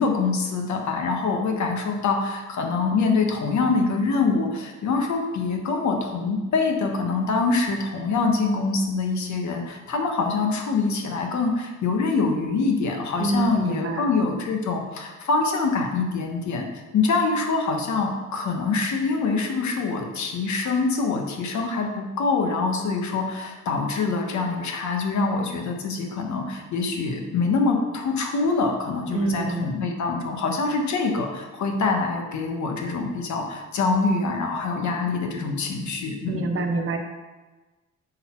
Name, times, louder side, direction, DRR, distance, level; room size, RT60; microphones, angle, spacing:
voice 1, 0.0-16.7 16.9-36.5, left 4 dB, 70° left, 2 dB, 1.4 m, -25 dB
voice 2, 13.2-14.1 29.1-29.7 36.3-37.0, right 2 dB, 45° right, 4 dB, 1.1 m, -26 dB
6.5 x 5.6 x 4.5 m, 1.2 s
cardioid pair, 90°, 30 cm